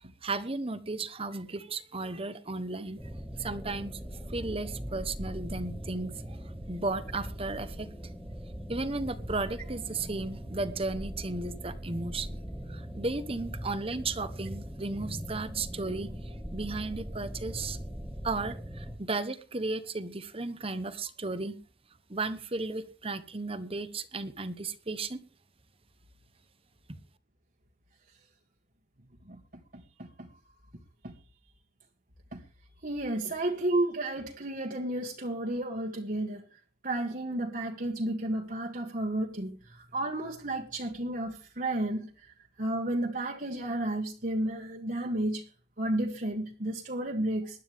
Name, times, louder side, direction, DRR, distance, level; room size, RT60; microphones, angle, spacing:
voice 1, 0.2-3.0 3.4-4.0 4.3-6.4 6.7-7.9 8.7-12.4 12.7-17.8 18.2-21.6 22.1-25.2, right 3 dB, 30° right, 1.1 m, -34 dB
sound 1, 3.0-18.9, equal, ahead, 1.8 m, -40 dB
voice 2, 29.7-30.3 31.0-31.1 32.3-32.4 32.8-45.5 45.8-47.6, right 1 dB, 45° right, 1.6 m, -32 dB
20.0 x 11.5 x 3.6 m
head